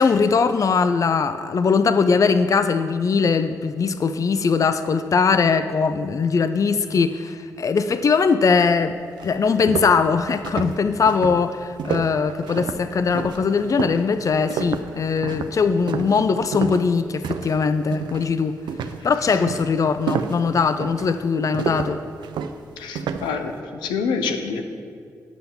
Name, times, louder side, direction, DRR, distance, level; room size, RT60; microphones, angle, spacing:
voice 1, 0.0-9.0 9.2-18.6 19.0-22.0, left 5 dB, 45° left, 11 dB, 0.5 m, -20 dB
sound 1, 8.7-8.8 9.2-17.6 17.9-18.3 18.7-23.4, right 7 dB, 80° right, 0.5 m, -30 dB
voice 2, 22.8-24.6, left 5 dB, 85° left, 6 dB, 0.8 m, -27 dB
10.5 x 5.7 x 7.0 m, 2.2 s
supercardioid pair, 45°, 8 cm